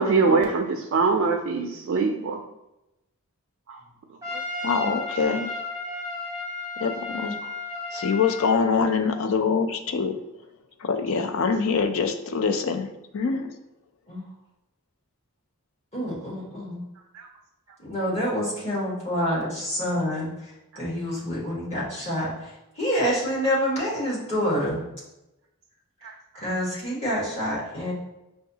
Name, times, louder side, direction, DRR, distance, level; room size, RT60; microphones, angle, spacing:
voice 1, 0.0-2.4 4.3-4.4 17.1-17.3 26.0-26.1, right 4 dB, 70° right, 2 dB, 0.3 m, -23 dB
Trumpet, 4.2-8.6, left 2 dB, 15° right, 0.7 m, -33 dB
voice 2, 4.6-5.5 6.8-7.4 7.9-10.2 10.8-13.5, left 5 dB, 65° left, 7 dB, 0.4 m, -24 dB
voice 3, 15.9-16.8 17.8-20.3 20.7-22.5 22.8-24.8 26.3-27.9, equal, 30° left, -7 dB, 1.3 m, -27 dB
5.4 x 2.3 x 2.7 m, 0.94 s
head